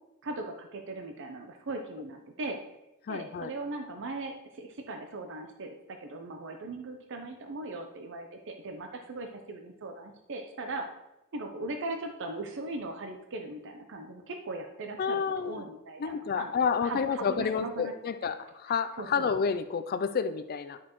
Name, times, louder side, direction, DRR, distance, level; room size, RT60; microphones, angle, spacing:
voice 1, 0.2-2.6 3.1-10.9 11.3-16.5 16.8-17.9 18.2-18.4 19.0-19.3, right 2 dB, 60° right, 4 dB, 0.6 m, -39 dB
voice 2, 3.1-3.5 15.0-15.6 16.0-20.8, left 6 dB, 45° left, 10 dB, 0.4 m, -30 dB
11.0 x 6.2 x 3.0 m, 0.95 s
head